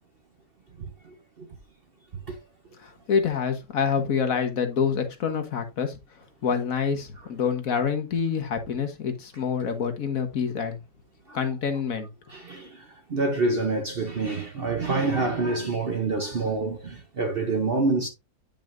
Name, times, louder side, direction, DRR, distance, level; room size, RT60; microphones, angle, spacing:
voice 1, 0.8-1.5 2.3-2.4 11.3-11.4 12.3-18.1, right 3 dB, 45° right, 0.9 m, -27 dB
voice 2, 2.8-6.0 6.4-10.8 11.3-12.1, left 6 dB, 60° left, 1.5 m, -27 dB
9.0 x 5.5 x 2.5 m
omnidirectional pair, 1.8 m